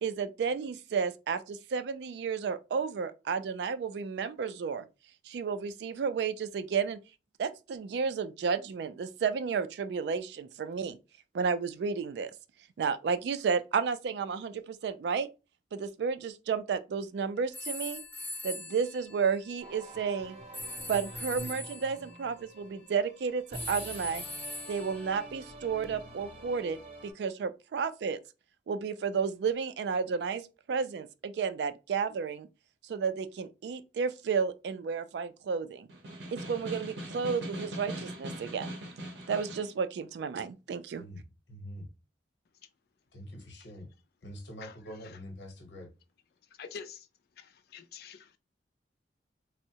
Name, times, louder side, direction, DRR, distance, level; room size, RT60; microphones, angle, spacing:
voice 1, 0.0-4.8 5.3-7.0 7.4-11.0 11.3-12.3 12.8-15.3 15.7-18.0 18.4-20.4 20.9-24.2 24.7-26.8 27.0-28.2 28.7-30.4 30.7-32.5 32.8-35.9 36.3-38.7 39.3-41.0, right 6 dB, 70° right, 0.3 m, -32 dB
sound 1, 17.5-19.8 20.5-22.0 23.5-25.3, left 1 dB, 10° left, 0.5 m, -41 dB
sound 2, 19.6-27.1, right 1 dB, 35° right, 0.7 m, -47 dB
Snare drum, 35.9-39.7, right 1 dB, 85° right, 0.7 m, -41 dB
voice 2, 40.9-41.9 43.1-43.9 44.2-45.9, equal, 85° left, 1.0 m, -45 dB
voice 3, 46.5-47.1 47.4-48.4, left 6 dB, 60° left, 0.4 m, -46 dB
3.5 x 2.0 x 2.7 m
head